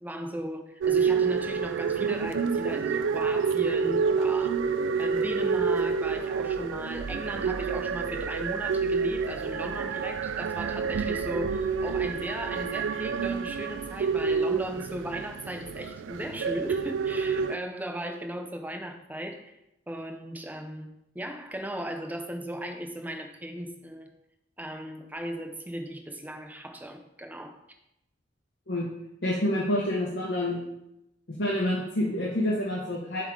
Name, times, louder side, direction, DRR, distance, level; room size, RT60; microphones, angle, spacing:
voice 1, 0.0-4.6 5.0-19.5 19.9-24.1 24.6-27.6, right 1 dB, 10° right, 5 dB, 0.6 m, -37 dB
sound 1, 0.8-17.6, right 5 dB, 85° right, 0.3 m, -28 dB
voice 2, 29.2-30.7 31.4-33.2, left 1 dB, 60° left, -5 dB, 1.1 m, -27 dB
7.1 x 3.8 x 4.7 m, 0.85 s
head